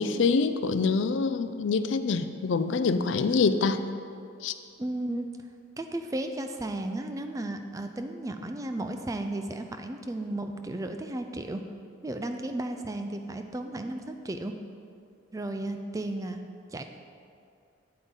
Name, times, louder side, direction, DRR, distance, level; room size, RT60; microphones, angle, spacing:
voice 1, 0.0-3.8 4.4-4.5, left 4 dB, 65° left, 10 dB, 0.4 m, -25 dB
voice 2, 4.8-5.2 5.8-11.6 12.0-14.5 15.3-16.4 16.7-16.8, right 1 dB, 15° right, 6 dB, 0.4 m, -34 dB
8.6 x 8.1 x 3.7 m, 2.4 s
head